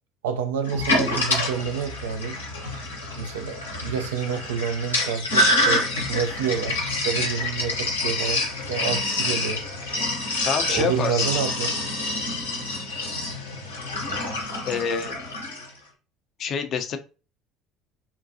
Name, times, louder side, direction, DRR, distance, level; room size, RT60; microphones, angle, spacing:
voice 1, 0.2-2.4 3.2-6.8 7.0-9.6 10.7-11.8, right 7 dB, 75° right, 0.4 m, -28 dB
Sink (filling or washing), 0.7-15.7, left 2 dB, 90° left, 0.8 m, -27 dB
voice 2, 10.5-11.3 14.6-15.1 16.4-17.0, left 6 dB, 50° left, 0.5 m, -26 dB
3.7 x 2.2 x 2.6 m
figure-of-eight pair, 60°, 0 cm